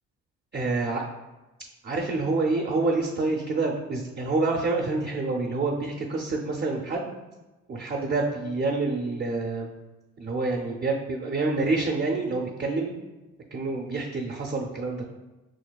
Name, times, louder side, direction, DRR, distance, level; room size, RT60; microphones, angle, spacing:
voice 1, 0.5-1.0 1.8-7.1 7.7-9.7 10.2-12.9 13.5-15.0, right 3 dB, 35° right, -1 dB, 0.5 m, -27 dB
6.1 x 2.2 x 2.2 m, 1.1 s
cardioid pair, 90°, 30 cm